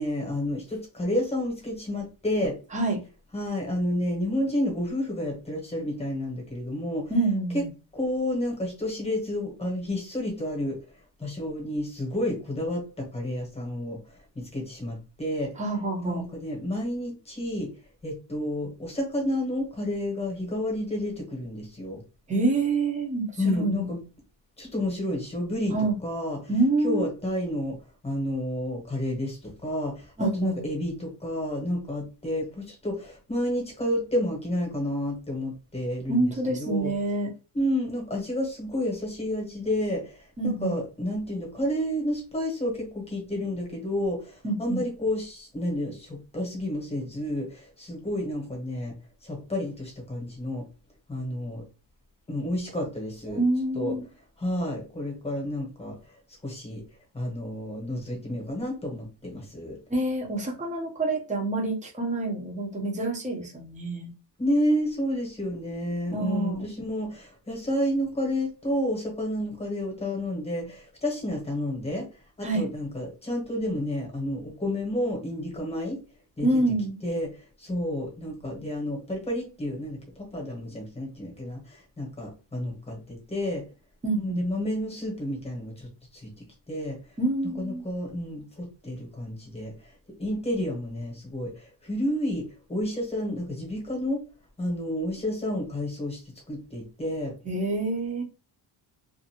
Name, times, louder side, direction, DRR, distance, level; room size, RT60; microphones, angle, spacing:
voice 1, 0.0-2.6 3.3-7.1 7.5-7.6 7.9-10.8 11.2-15.6 16.0-17.7 18.0-22.0 23.4-24.0 24.6-25.7 26.0-26.4 26.8-27.8 28.0-36.9 37.5-48.9 49.2-50.6 51.1-51.6 52.3-53.4 53.7-54.0 54.4-55.9 56.4-56.8 57.1-59.8 64.4-72.1 72.4-76.0 76.4-76.6 77.0-83.6 84.1-86.3 86.7-87.0 87.6-89.9 90.2-92.4 92.7-94.2 94.6-96.2 96.5-97.3, left 1 dB, 10° left, 0 dB, 1.1 m, -30 dB
voice 2, 7.1-7.7 15.6-16.2 22.3-23.9 25.7-26.0 26.5-27.1 30.2-30.6 36.1-37.3 40.4-40.8 44.4-44.8 53.3-54.0 59.9-64.1 66.1-66.7 72.4-72.7 76.4-77.0 84.0-84.4 87.2-87.8 97.4-98.2, right 2 dB, 15° right, 1 dB, 0.7 m, -27 dB
2.6 x 2.5 x 2.8 m, 0.33 s
cardioid pair, 150°, 50 cm